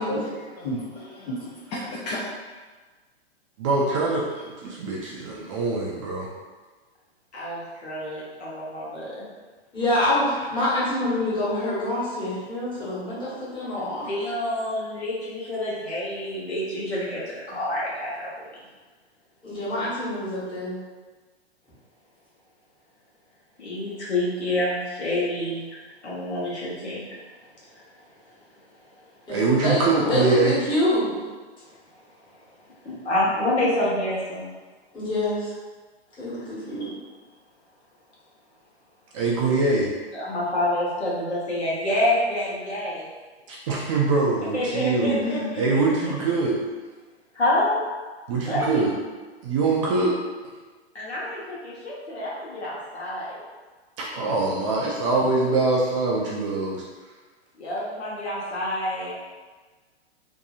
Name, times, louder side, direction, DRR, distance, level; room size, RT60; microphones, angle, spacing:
voice 1, 0.0-2.2, left 1 dB, 35° left, -5 dB, 0.5 m, -32 dB
voice 2, 3.6-6.3 29.3-30.5 39.1-39.9 43.5-45.1 45.5-46.6 48.3-48.9 49.4-50.2 54.0-56.8, right 3 dB, 30° right, -4 dB, 0.4 m, -23 dB
voice 3, 7.3-9.2 14.1-18.5 23.6-25.7 26.0-27.2 32.8-34.5 36.8-36.9 40.1-43.1 44.5-45.6 47.3-47.8 48.5-48.8 50.9-53.4 57.6-59.1, left 1 dB, 80° left, -7 dB, 1.1 m, -27 dB
voice 4, 9.7-14.0 19.4-20.8 29.3-31.2 34.9-35.5 36.2-36.9 45.0-45.5, left 1 dB, 15° left, -10 dB, 1.2 m, -26 dB
2.7 x 2.6 x 2.3 m, 1.4 s
figure-of-eight pair, 110°, 32 cm